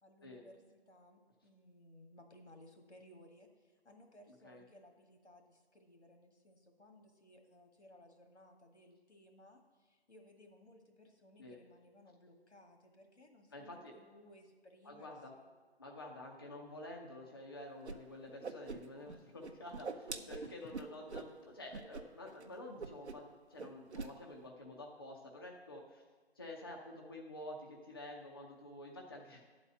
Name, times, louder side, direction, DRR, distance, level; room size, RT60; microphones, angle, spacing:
voice 1, 0.0-15.5 20.1-20.7, left 1 dB, 85° left, 4 dB, 1.7 m, -61 dB
voice 2, 13.5-13.9 14.8-15.4 15.8-26.0 26.4-29.5, left 1 dB, 20° left, -1 dB, 0.6 m, -49 dB
Whoosh swoosh swish, 17.8-18.0 18.2-19.2 19.4-21.3 21.7-22.0 22.3-22.4 22.8-23.3 23.6-24.1, right 4 dB, 75° right, 0.8 m, -44 dB
9.7 x 4.2 x 7.4 m, 1.5 s
figure-of-eight pair, 155°, 33 cm